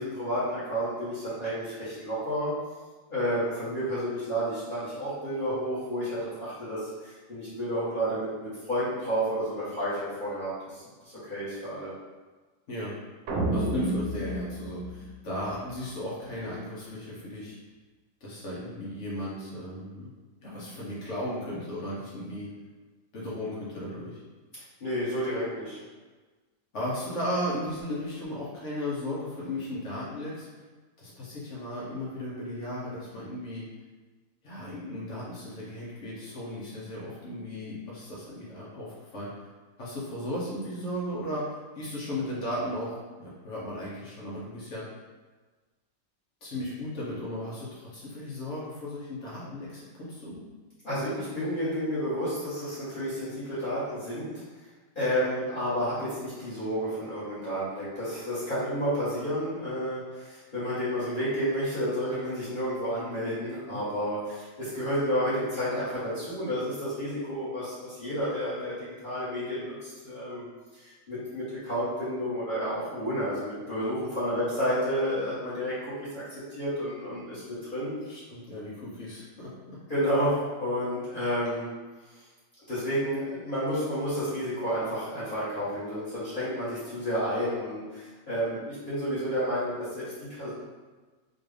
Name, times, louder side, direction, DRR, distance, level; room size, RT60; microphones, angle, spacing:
voice 1, 0.0-2.5 3.1-11.9 24.8-25.8 50.8-54.3 54.9-70.4 70.7-77.9 79.9-81.7 82.7-90.5, equal, 40° left, -13 dB, 1.5 m, -31 dB
sound 1, 13.3-15.7, right 1 dB, 85° right, 1.1 m, -31 dB
voice 2, 13.5-17.6 18.2-20.1 20.4-22.5 23.1-24.2 26.7-30.5 31.0-33.6 34.4-39.3 39.8-42.9 43.2-44.8 46.4-50.4 63.7-63.8 78.1-79.8, left 1 dB, 60° left, -7 dB, 1.2 m, -35 dB
4.2 x 2.4 x 3.3 m, 1.3 s
omnidirectional pair, 1.4 m